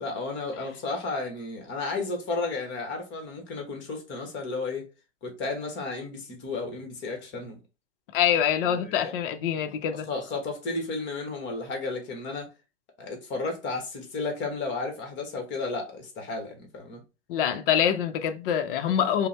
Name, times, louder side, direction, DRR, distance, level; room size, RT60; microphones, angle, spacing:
voice 1, 0.0-4.9 5.2-7.6 8.6-9.1 10.1-12.5 13.0-17.0, left 3 dB, 35° left, 1.3 m, -33 dB
voice 2, 8.1-10.1 17.3-19.3, left 9 dB, 50° left, 0.7 m, -25 dB
5.2 x 2.2 x 3.2 m
figure-of-eight pair, 100°, 35 cm